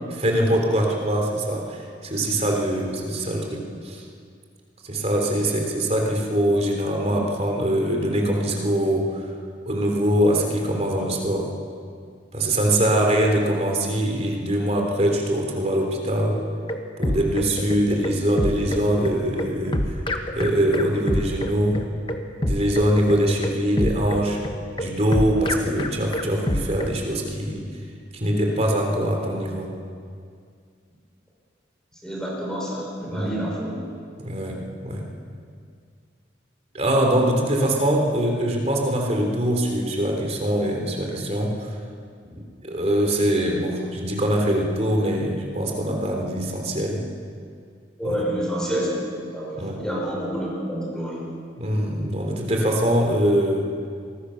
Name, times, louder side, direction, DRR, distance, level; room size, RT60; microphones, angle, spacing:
voice 1, 0.2-4.0 4.8-9.3 9.7-11.5 12.3-16.4 17.0-19.8 20.3-21.8 22.4-24.4 24.8-27.6 28.1-29.7 33.1-33.3 34.2-35.1 36.7-41.7 42.3-47.0 48.0-48.2 49.6-49.8 51.6-53.7, right 1 dB, 35° right, 1 dB, 3.6 m, -23 dB
sound 1, 16.4-27.0, left 1 dB, 25° left, 1.3 m, -27 dB
voice 2, 32.0-33.8 37.6-37.7 48.0-51.3, equal, 5° left, -5 dB, 5.7 m, -28 dB
25.0 x 21.0 x 6.6 m, 2.2 s
head